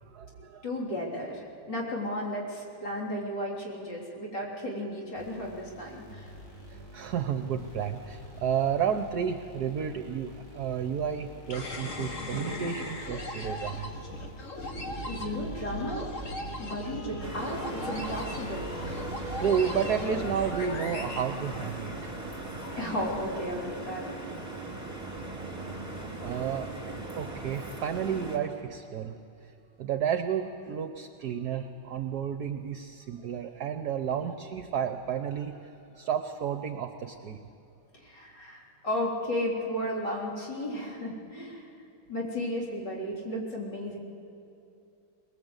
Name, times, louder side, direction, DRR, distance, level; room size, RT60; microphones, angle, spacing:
voice 1, 0.0-0.6 3.0-3.1 6.7-13.9 19.2-22.1 26.2-26.7 27.0-29.1 29.8-37.4, right 8 dB, 60° right, 7 dB, 1.2 m, -32 dB
voice 2, 0.6-6.3 15.0-16.1 16.6-18.7 22.7-24.1 37.9-41.7 42.1-44.0, left 1 dB, 55° left, -3 dB, 4.1 m, -34 dB
sound 1, 5.2-23.9, left 2 dB, 90° left, 4.9 m, -50 dB
sound 2, 11.5-22.1, left 1 dB, 40° left, 1.9 m, -38 dB
sound 3, 17.2-28.4, right 2 dB, 10° right, 2.7 m, -38 dB
22.0 x 21.0 x 8.1 m, 2.7 s
omnidirectional pair, 2.2 m